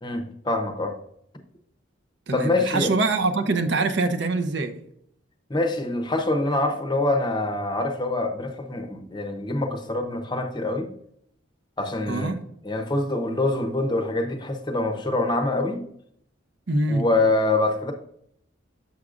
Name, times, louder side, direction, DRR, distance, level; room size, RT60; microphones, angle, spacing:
voice 1, 0.0-0.9 2.3-2.9 5.5-10.9 11.8-12.4 12.6-15.8 16.9-17.9, left 2 dB, 20° left, 0.7 m, -25 dB
voice 2, 2.3-4.8 12.1-12.4 16.7-17.1, right 3 dB, 60° right, 0.6 m, -24 dB
7.2 x 6.3 x 2.4 m
head